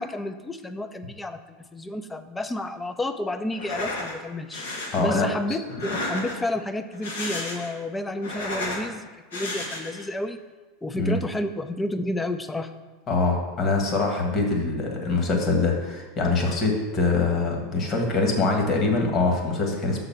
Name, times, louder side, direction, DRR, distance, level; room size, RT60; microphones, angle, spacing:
voice 1, 0.0-4.7 5.0-10.4 10.8-12.7, left 1 dB, 10° left, 9 dB, 0.5 m, -31 dB
sound 1, 3.5-4.1 4.5-5.0 5.7-6.5 6.9-7.8 8.1-8.9 9.3-10.1, left 2 dB, 90° left, 1.5 m, -32 dB
voice 2, 4.9-5.3 10.9-11.2 13.1-20.0, left 3 dB, 40° left, 1 dB, 1.5 m, -24 dB
6.5 x 4.0 x 5.7 m, 1.2 s
hypercardioid pair, 100°, 0 cm